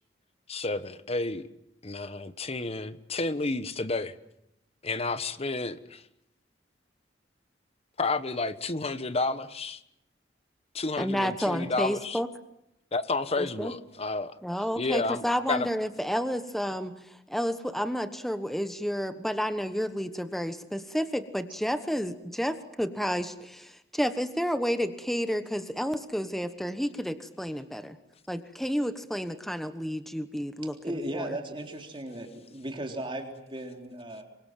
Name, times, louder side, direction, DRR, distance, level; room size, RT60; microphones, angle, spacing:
voice 1, 0.5-1.5 1.8-4.2 4.8-6.0 8.0-9.8 10.7-12.2 12.9-14.4 14.8-15.2 15.5-15.7, left 3 dB, 35° left, 1.2 m, -30 dB
voice 2, 11.0-12.3 13.4-13.7 14.4-28.0 28.3-30.8 31.1-31.4, equal, ahead, 1.2 m, -31 dB
voice 3, 30.8-34.2, right 1 dB, 30° right, 3.7 m, -36 dB
27.0 x 24.0 x 7.6 m
head